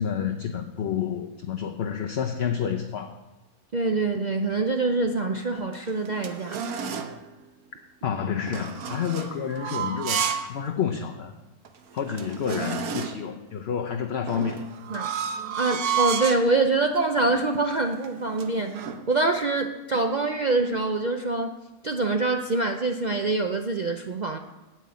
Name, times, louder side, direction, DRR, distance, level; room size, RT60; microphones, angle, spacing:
voice 1, 0.0-3.2 8.0-11.3 11.9-14.6, left 7 dB, 55° left, 4 dB, 0.8 m, -29 dB
voice 2, 3.7-6.6 14.9-15.1 15.6-18.8 19.1-21.6 21.8-24.4, right 3 dB, 60° right, 5 dB, 0.4 m, -25 dB
sound 1, 5.5-7.2 8.5-10.5 10.9-11.0 11.6-11.7 11.9-13.3 14.3-16.5 17.2-17.4 17.7-19.0, right 7 dB, 80° right, 1.4 m, -31 dB
9.0 x 7.4 x 8.4 m, 1.0 s
omnidirectional pair, 1.6 m